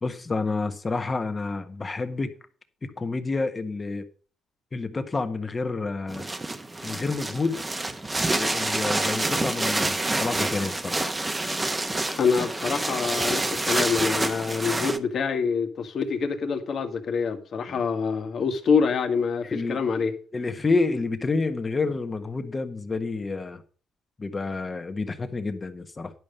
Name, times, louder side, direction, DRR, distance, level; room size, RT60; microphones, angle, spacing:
voice 1, 0.0-2.3 2.8-4.1 4.7-6.3 6.8-7.6 8.2-11.0 17.7-17.8 19.4-19.8 20.3-23.6 24.2-26.1, left 3 dB, 30° left, 1.4 m, -29 dB
sound 1, 6.1-15.0, right 2 dB, 20° right, 1.1 m, -27 dB
voice 2, 12.2-20.1, left 5 dB, 55° left, 1.8 m, -26 dB
11.0 x 5.3 x 6.6 m
cardioid pair, 90°, 0 cm